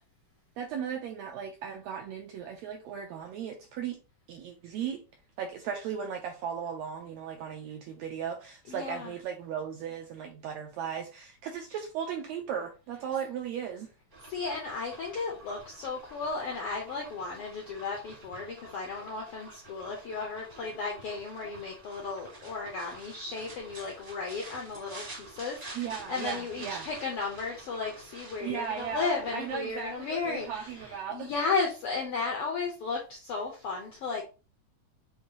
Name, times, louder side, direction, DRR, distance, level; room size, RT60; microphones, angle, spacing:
voice 1, 0.6-4.0 4.3-5.0 5.4-13.9 25.7-26.9 28.4-31.3, right 8 dB, 85° right, 1.5 m, -36 dB
voice 2, 8.7-9.1 14.2-34.2, left 4 dB, 80° left, 1.3 m, -34 dB
sound 1, 14.1-31.0, right 2 dB, 45° right, 0.7 m, -48 dB
6.5 x 2.6 x 2.8 m
omnidirectional pair, 3.6 m